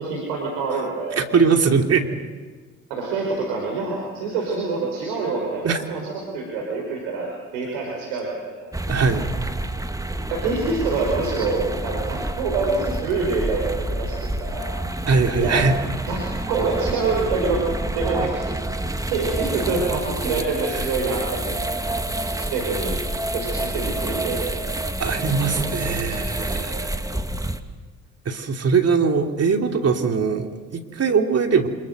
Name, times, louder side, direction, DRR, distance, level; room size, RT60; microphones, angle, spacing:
voice 1, 0.0-1.3 2.9-8.7 10.3-14.8 15.4-15.6 16.0-17.7 17.9-21.7 22.3-23.0 23.3-24.7 25.6-26.2, right 3 dB, 75° right, -1 dB, 5.0 m, -26 dB
voice 2, 1.2-2.1 5.6-5.8 8.9-9.3 15.1-15.7 20.8-20.9 25.0-26.9 28.2-31.7, right 5 dB, 40° right, 4 dB, 2.9 m, -21 dB
sound 1, 8.7-27.6, right 1 dB, 10° right, 1.9 m, -28 dB
28.0 x 27.0 x 6.7 m, 1.4 s
hypercardioid pair, 55°, 38 cm